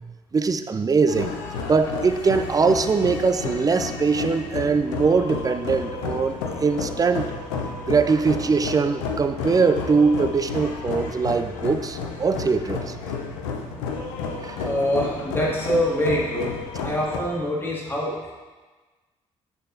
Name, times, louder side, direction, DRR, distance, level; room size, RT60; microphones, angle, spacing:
voice 1, 0.3-1.3 1.7-7.3 7.9-12.9 14.4-14.6, right 4 dB, 20° right, 9 dB, 0.4 m, -22 dB
sound 1, 1.1-17.2, left 4 dB, 75° left, 0.7 m, -31 dB
voice 2, 14.6-16.5 16.8-18.3, equal, 15° left, -5 dB, 1.9 m, -25 dB
7.0 x 6.7 x 2.7 m, 1.3 s
figure-of-eight pair, 40°, 17 cm